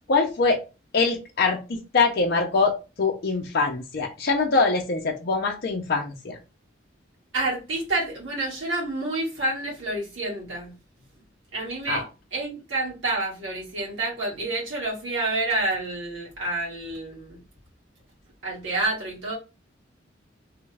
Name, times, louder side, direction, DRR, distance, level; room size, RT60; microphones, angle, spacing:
voice 1, 0.1-0.6 0.9-6.4 11.9-12.1, left 4 dB, 55° left, 0.5 m, -23 dB
voice 2, 7.3-10.7 11.5-12.0 12.3-17.4 18.4-19.4, right 2 dB, 80° right, 1.8 m, -28 dB
3.2 x 2.3 x 3.2 m
head